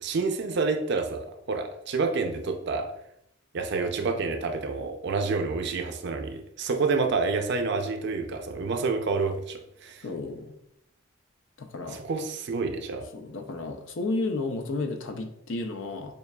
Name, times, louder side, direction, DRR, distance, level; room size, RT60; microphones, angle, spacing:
voice 1, 0.0-2.9 3.5-10.0 11.9-13.1, right 4 dB, 60° right, 6 dB, 0.5 m, -28 dB
voice 2, 10.0-10.5 11.6-12.0 13.1-16.1, left 3 dB, 65° left, 5 dB, 0.5 m, -32 dB
6.7 x 2.4 x 2.3 m, 0.78 s
head